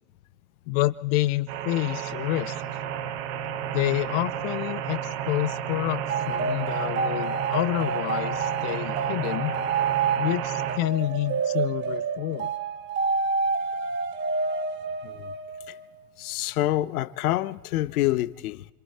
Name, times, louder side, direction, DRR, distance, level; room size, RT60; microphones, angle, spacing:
voice 1, 0.7-2.6 3.7-9.5 10.2-12.5, left 17 dB, 40° left, 0.7 m, -28 dB
sound 1, 1.5-10.8, right 9 dB, 45° right, 1.5 m, -32 dB
sound 2, 6.1-15.8, right 5 dB, 25° right, 1.5 m, -29 dB
voice 2, 16.2-18.7, left 15 dB, 60° left, 1.0 m, -27 dB
26.5 x 25.5 x 4.3 m
hypercardioid pair, 130°, 48 cm